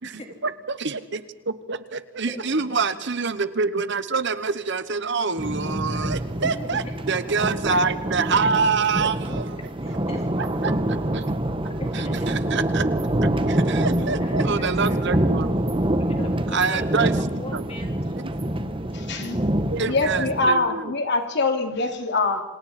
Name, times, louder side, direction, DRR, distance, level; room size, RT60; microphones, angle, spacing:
voice 1, 0.0-9.6 10.4-11.3 11.9-12.9 13.2-15.5 16.5-17.6 18.2-18.3 19.7-20.9, right 4 dB, 60° right, 13 dB, 1.2 m, -26 dB
sound 1, 5.4-20.5, right 1 dB, 25° right, 1.3 m, -26 dB
voice 2, 9.8-10.3 11.8-12.3 13.9-15.4 15.9-18.1, left 1 dB, 30° left, 2 dB, 4.0 m, -38 dB
voice 3, 18.9-19.4 19.8-22.4, left 2 dB, 60° left, 5 dB, 2.8 m, -24 dB
28.0 x 27.0 x 4.3 m, 0.95 s
head